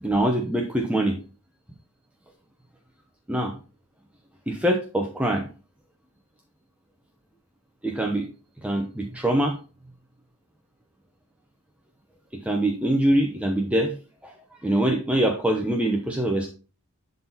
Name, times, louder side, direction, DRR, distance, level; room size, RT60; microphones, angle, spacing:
voice 1, 0.0-1.2 3.3-3.5 4.5-5.5 7.8-8.3 8.6-9.6 12.4-13.9 14.2-14.3 14.6-16.5, right 1 dB, 5° right, 1 dB, 0.9 m, -23 dB
11.5 x 4.1 x 4.1 m, 0.36 s
head